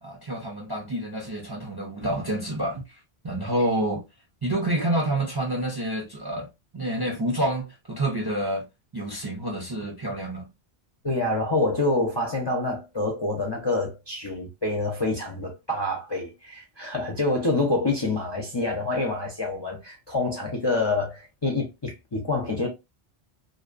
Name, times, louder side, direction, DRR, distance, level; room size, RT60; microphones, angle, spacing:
voice 1, 0.0-3.0 3.2-4.0 4.4-6.5 6.7-8.7 8.9-10.5, right 1 dB, 40° right, 0.3 m, -28 dB
voice 2, 11.0-22.7, left 2 dB, 40° left, 0.4 m, -27 dB
2.6 x 2.1 x 2.4 m
omnidirectional pair, 1.1 m